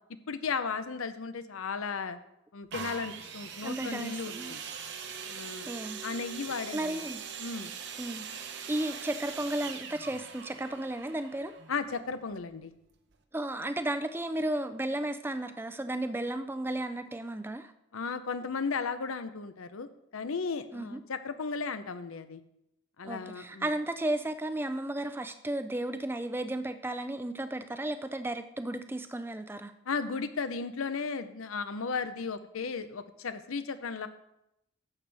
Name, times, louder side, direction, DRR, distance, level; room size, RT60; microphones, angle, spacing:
voice 1, 0.3-2.2 2.5-4.6 5.3-5.7 6.0-7.0 7.4-7.7 11.7-12.7 17.9-19.9 20.1-22.4 23.0-23.7 29.9-34.1, left 5 dB, 85° left, 12 dB, 0.7 m, -35 dB
sound 1, 2.7-12.4 13.1-13.2, right 7 dB, 55° right, 0.9 m, -42 dB
voice 2, 3.6-4.6 5.7-6.0 6.7-7.2 8.0-11.5 13.3-17.7 20.7-21.0 23.0-29.7, right 1 dB, 10° right, 9 dB, 0.4 m, -34 dB
11.5 x 7.9 x 3.4 m, 0.85 s
head